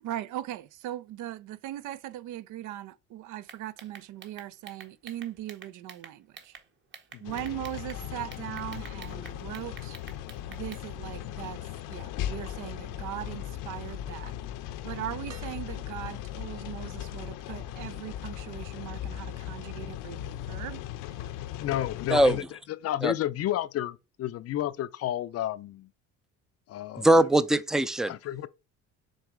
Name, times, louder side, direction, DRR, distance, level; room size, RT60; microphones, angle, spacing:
voice 1, 0.0-6.6 7.2-10.0 10.5-11.6 11.9-14.3 14.8-20.8, right 13 dB, 70° right, 0.7 m, -39 dB
sound 1, 3.5-6.6 6.9-8.0 8.3-10.8, right 6 dB, 35° right, 1.3 m, -48 dB
sound 2, 7.2-22.4, left 11 dB, 80° left, 0.8 m, -38 dB
sound 3, 15.3-16.3 17.8-17.9, right 4 dB, 55° right, 3.3 m, -51 dB
voice 2, 21.6-22.4 22.8-25.9 26.7-27.1 28.1-28.5, left 12 dB, 50° left, 0.5 m, -31 dB
voice 3, 22.1-22.4 23.0-23.1 27.0-28.1, right 1 dB, ahead, 0.4 m, -21 dB
6.5 x 4.0 x 4.6 m
cardioid pair, 120°, 32 cm